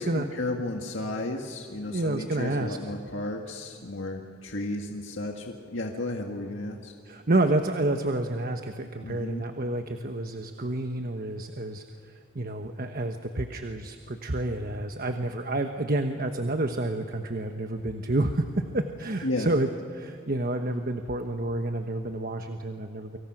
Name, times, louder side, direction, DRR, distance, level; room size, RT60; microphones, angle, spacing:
voice 1, 0.0-6.9 9.0-9.5 19.2-19.5, left 2 dB, 80° left, 2 dB, 1.8 m, -33 dB
voice 2, 1.9-2.8 7.0-23.2, right 2 dB, 50° right, 6 dB, 1.2 m, -29 dB
29.5 x 26.0 x 6.1 m, 2.6 s
head